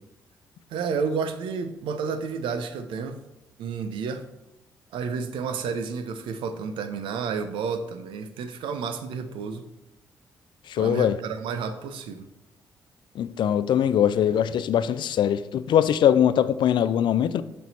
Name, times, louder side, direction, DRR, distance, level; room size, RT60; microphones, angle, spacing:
voice 1, 0.7-3.2 3.6-4.2 4.9-9.7 10.7-12.3, right 5 dB, 70° right, 10 dB, 0.6 m, -31 dB
voice 2, 10.7-11.2 13.2-17.4, left 9 dB, 60° left, 15 dB, 0.3 m, -22 dB
6.4 x 4.5 x 4.1 m, 0.94 s
hypercardioid pair, 45°, 9 cm